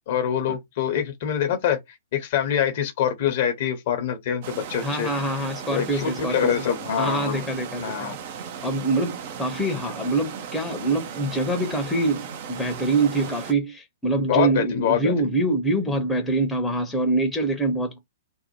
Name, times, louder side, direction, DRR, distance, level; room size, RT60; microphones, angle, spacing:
voice 1, 0.1-1.8 2.1-5.1 5.7-7.4 7.8-8.1 14.3-15.3, left 9 dB, 45° left, 0.7 m, -25 dB
sound 1, 4.4-13.5, right 7 dB, 45° right, 0.5 m, -37 dB
voice 2, 4.8-6.5 7.0-8.1 8.6-18.0, right 2 dB, 10° left, 0.7 m, -25 dB
2.6 x 2.1 x 2.9 m
figure-of-eight pair, 110°, 0 cm